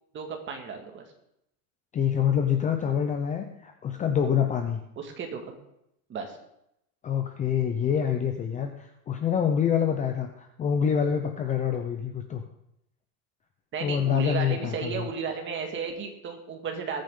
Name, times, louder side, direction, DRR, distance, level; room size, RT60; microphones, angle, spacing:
voice 1, 0.1-1.0 5.0-5.6 6.1-6.4 13.7-17.0, right 5 dB, 25° right, 3 dB, 2.0 m, -34 dB
voice 2, 1.9-4.8 7.0-12.4 13.8-15.1, left 8 dB, 15° left, 5 dB, 0.6 m, -26 dB
20.0 x 8.9 x 3.8 m, 0.80 s
supercardioid pair, 150°, 46 cm